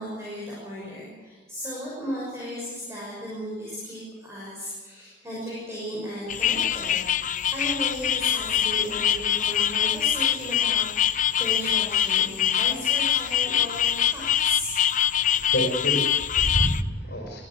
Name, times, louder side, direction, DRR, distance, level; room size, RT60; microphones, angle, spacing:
voice 1, 0.0-14.8 15.4-15.6 17.0-17.2, equal, 15° right, -5 dB, 6.3 m, -35 dB
sound 1, 6.3-16.8, left 10 dB, 40° left, 0.6 m, -24 dB
voice 2, 15.2-17.4, equal, 60° left, 0 dB, 4.6 m, -28 dB
23.5 x 15.0 x 8.4 m, 1.3 s
head